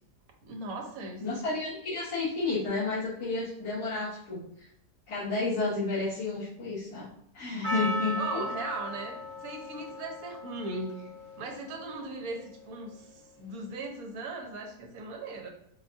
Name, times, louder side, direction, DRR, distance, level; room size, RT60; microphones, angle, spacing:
voice 1, 0.4-1.2 8.2-11.1 11.4-15.5, right 3 dB, 70° right, 2 dB, 1.1 m, -38 dB
voice 2, 1.2-4.7 5.1-7.1 7.3-8.4, left 3 dB, 85° left, -12 dB, 1.9 m, -31 dB
Percussion, 7.6-12.6, equal, 40° right, 1.5 m, -37 dB
5.0 x 2.3 x 2.5 m, 0.74 s
omnidirectional pair, 1.7 m